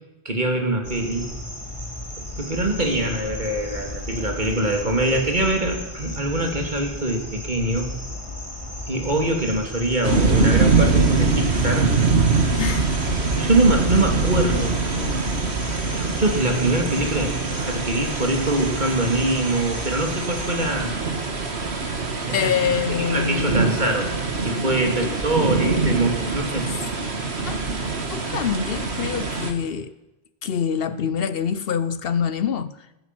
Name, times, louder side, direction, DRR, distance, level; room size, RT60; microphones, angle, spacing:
voice 1, 0.2-1.3 2.4-7.9 8.9-11.9 13.3-15.2 15.9-20.9 21.6-21.9 22.2-22.5 22.9-26.7, right 1 dB, 45° right, 3 dB, 2.9 m, -24 dB
sound 1, 0.8-20.7, left 1 dB, 30° left, 3.4 m, -35 dB
sound 2, 10.0-29.5, right 4 dB, 80° right, 2.0 m, -23 dB
voice 2, 12.6-12.9 22.3-23.6 25.0-25.1 27.4-27.6 28.1-29.9 30.4-32.7, left 7 dB, 65° left, 14 dB, 0.9 m, -25 dB
15.0 x 14.5 x 6.1 m, 0.96 s
omnidirectional pair, 1.1 m